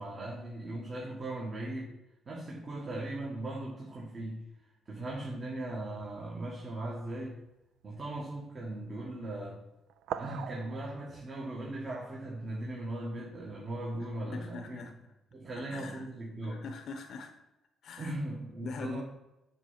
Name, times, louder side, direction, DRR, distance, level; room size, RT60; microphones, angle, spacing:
voice 1, 0.0-1.9 2.3-4.5 4.8-7.3 7.8-9.6 10.1-14.8 15.3-16.6 18.0-19.0, right 1 dB, 40° right, -3 dB, 1.6 m, -38 dB
sound 1, 5.6-6.4 7.0-7.2 8.1-8.2 9.9-11.2, right 9 dB, 85° right, 0.4 m, -42 dB
voice 2, 14.3-14.9 15.7-16.1 16.5-17.3 17.8-18.1 18.6-19.0, left 4 dB, 65° left, 5 dB, 0.8 m, -42 dB
7.2 x 3.4 x 5.7 m, 0.96 s
cardioid pair, 90°, 0 cm